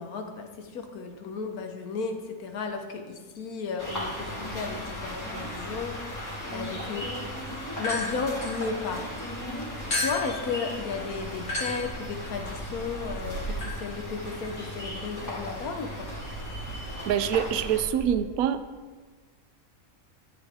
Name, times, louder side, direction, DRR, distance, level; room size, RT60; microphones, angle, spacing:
voice 1, 0.0-7.1 7.5-9.2 9.6-9.7 10.0-16.1, left 4 dB, 90° left, 5 dB, 1.5 m, -34 dB
sound 1, 3.8-17.8, left 1 dB, 10° left, 1.9 m, -37 dB
sound 2, 7.8-9.2 9.9-18.2, left 1 dB, 60° left, 2.5 m, -36 dB
voice 2, 17.1-18.6, right 9 dB, 80° right, 11 dB, 1.0 m, -25 dB
11.0 x 8.0 x 3.5 m, 1.4 s
omnidirectional pair, 1.5 m